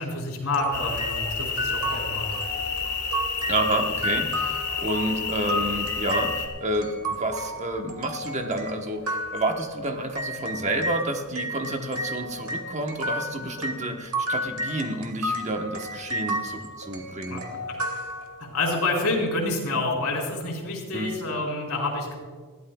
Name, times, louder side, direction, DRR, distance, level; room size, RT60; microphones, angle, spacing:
voice 1, 0.0-2.4 17.3-17.4 17.7-17.8 18.4-22.1, left 2 dB, 75° left, -1 dB, 4.4 m, -28 dB
sound 1, 0.5-11.0 11.4-18.7, equal, 70° right, 1.6 m, -33 dB
sound 2, 0.7-6.5, left 5 dB, 45° left, 1.7 m, -30 dB
voice 2, 3.5-17.4 20.9-21.1, right 1 dB, 30° right, 4 dB, 1.2 m, -29 dB
21.0 x 15.0 x 2.4 m, 1.5 s
head